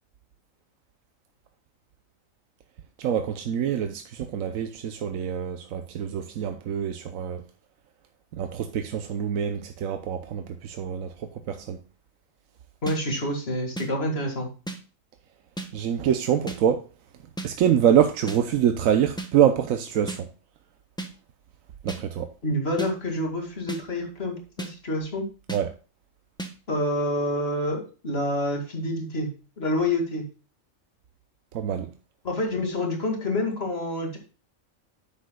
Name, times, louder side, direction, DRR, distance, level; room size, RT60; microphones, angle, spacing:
voice 1, 3.0-7.4 8.3-11.8 15.7-16.8 17.4-20.3 21.8-22.3 25.5-25.7 31.5-31.9, right 9 dB, 85° right, 1.1 m, -25 dB
voice 2, 12.8-14.5 22.4-25.2 26.7-29.3 29.6-30.2 32.2-34.2, left 1 dB, 50° left, 2.4 m, -27 dB
sound 1, 12.9-13.0 13.8-13.9 14.7-14.8 15.6-15.7 16.5-16.6 17.4-17.5 18.3-18.4 19.2-19.3 20.1-20.2 21.0-21.1 21.9-22.0 22.8-22.9 23.7-23.8 24.6-24.7 25.5-25.6 26.4-26.5, right 2 dB, 5° left, 1.0 m, -33 dB
10.0 x 7.8 x 2.2 m
omnidirectional pair, 1.4 m